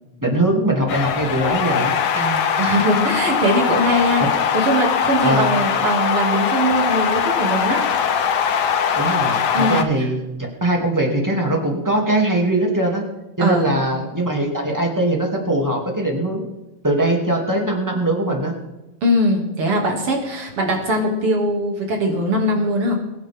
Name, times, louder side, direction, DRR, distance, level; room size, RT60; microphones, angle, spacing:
voice 1, 0.2-1.9 5.2-5.6 9.0-10.2 10.6-13.0 13.4-16.5 16.8-18.5, right 1 dB, 10° right, 0 dB, 2.5 m, -21 dB
sound 1, 0.9-9.8, left 7 dB, 70° left, 1.8 m, -21 dB
voice 2, 2.1-4.2 4.5-7.8 9.5-10.1 13.4-13.7 19.0-22.9, equal, 90° right, 1 dB, 3.5 m, -21 dB
22.5 x 9.5 x 3.6 m, 1.0 s
omnidirectional pair, 2.4 m